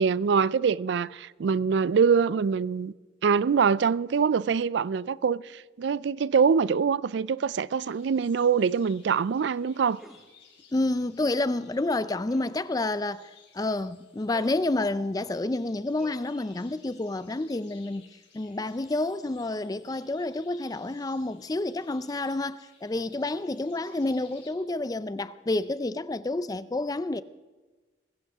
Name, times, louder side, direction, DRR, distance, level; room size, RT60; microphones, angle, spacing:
voice 1, 0.0-2.9 3.2-10.0, right 6 dB, 65° right, 0.3 m, -24 dB
sound 1, 7.8-24.5, left 6 dB, 65° left, 3.6 m, -59 dB
sound 2, 10.0-10.3 12.3-12.6 14.3-14.7 16.0-16.7, equal, ahead, 0.9 m, -50 dB
voice 2, 10.7-18.1 18.3-27.2, left 2 dB, 20° left, 0.4 m, -29 dB
20.5 x 16.0 x 3.5 m
head